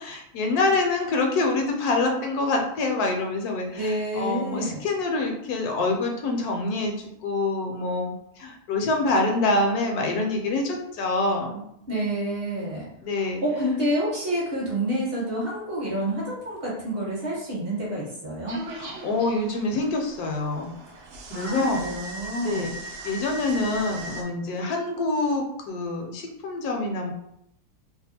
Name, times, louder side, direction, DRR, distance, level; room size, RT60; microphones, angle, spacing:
voice 1, 0.0-11.6 13.0-13.4 18.7-20.8 21.3-22.0 22.4-22.7 23.0-27.1, left 2 dB, 75° left, 2 dB, 1.0 m, -26 dB
voice 2, 3.8-4.8 11.9-12.9 13.1-18.6 20.9-22.7, right 1 dB, 45° right, -5 dB, 1.0 m, -28 dB
sound 1, 18.5-24.2, right 1 dB, 70° right, 0.7 m, -39 dB
2.8 x 2.4 x 4.0 m, 0.78 s
omnidirectional pair, 1.8 m